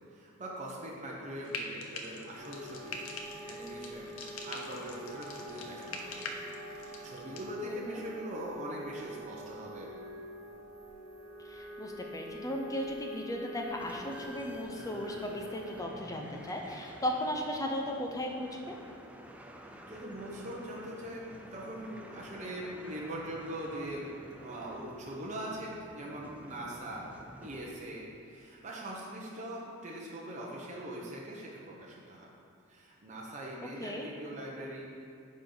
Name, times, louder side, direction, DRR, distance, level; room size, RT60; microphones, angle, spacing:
voice 1, 0.1-3.0 3.4-4.1 4.4-6.3 6.6-9.9 19.9-24.1 24.4-27.1 27.4-32.3 32.7-34.9, right 1 dB, 35° right, -4 dB, 0.9 m, -42 dB
Frying (food), 1.4-7.5, left 3 dB, 65° left, 0.7 m, -44 dB
sound 1, 2.3-15.8, equal, 65° right, 1.6 m, -46 dB
voice 2, 7.6-8.0 11.4-18.6 33.8-34.1, left 1 dB, 15° left, 1 dB, 0.7 m, -36 dB
sound 2, 13.8-28.1, equal, 5° right, 0.4 m, -51 dB
9.3 x 5.3 x 3.9 m, 2.5 s
head